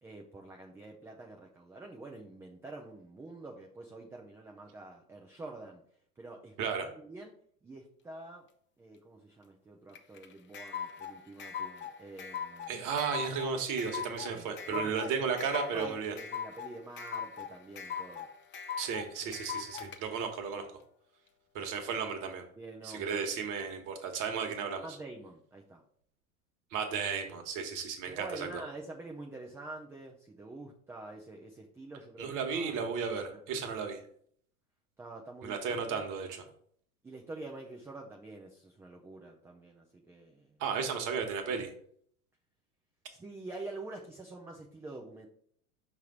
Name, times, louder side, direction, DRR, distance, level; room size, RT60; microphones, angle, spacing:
voice 1, 0.0-5.8 6.2-6.5 7.0-7.3 7.6-8.5 8.8-12.8 14.3-18.3 22.6-23.2 24.8-25.8 28.1-32.8 33.3-33.4 35.0-36.0 37.0-40.6 43.1-45.3, right 2 dB, 5° right, 0 dB, 0.4 m, -47 dB
voice 2, 6.6-6.9 12.7-16.1 18.8-20.6 21.5-22.4 22.8-24.9 26.7-28.5 32.2-34.0 35.4-36.4 40.6-41.7, right 6 dB, 45° right, 4 dB, 1.4 m, -34 dB
sound 1, 9.9-20.0, left 7 dB, 25° left, 0.7 m, -40 dB
5.6 x 3.3 x 5.3 m, 0.62 s
hypercardioid pair, 90°, 45 cm